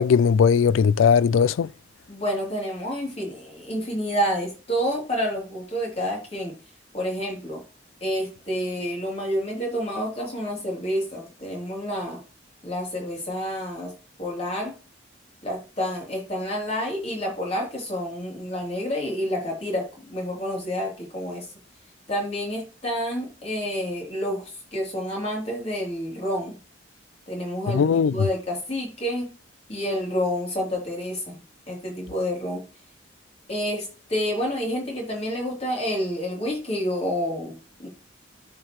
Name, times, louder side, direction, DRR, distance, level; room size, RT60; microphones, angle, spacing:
voice 1, 0.0-1.7 27.7-28.1, left 6 dB, 85° left, 0.3 m, -18 dB
voice 2, 2.1-6.6 6.9-7.6 8.0-12.2 12.6-13.9 14.2-14.8 15.4-21.4 22.1-26.5 27.3-29.3 29.7-31.4 31.7-32.6 33.5-37.9, equal, 35° left, 3.2 m, -29 dB
12.5 x 4.6 x 3.1 m
head